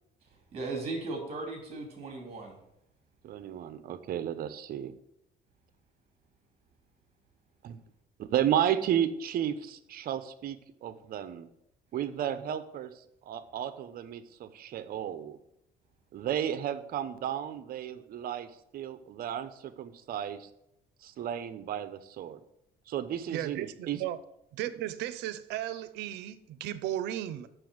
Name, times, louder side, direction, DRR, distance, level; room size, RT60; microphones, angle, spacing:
voice 1, 0.5-2.6, right 3 dB, 35° right, 1 dB, 3.0 m, -37 dB
voice 2, 3.2-4.9 7.6-7.8 8.2-11.5 11.9-12.9 13.2-15.4 16.1-20.5 21.0-22.4 22.9-24.0, right 10 dB, 60° right, 12 dB, 0.9 m, -33 dB
voice 3, 23.3-24.2 24.5-27.5, right 12 dB, 90° right, 14 dB, 0.7 m, -35 dB
6.9 x 6.3 x 7.7 m, 0.80 s
cardioid pair, 110°, 17 cm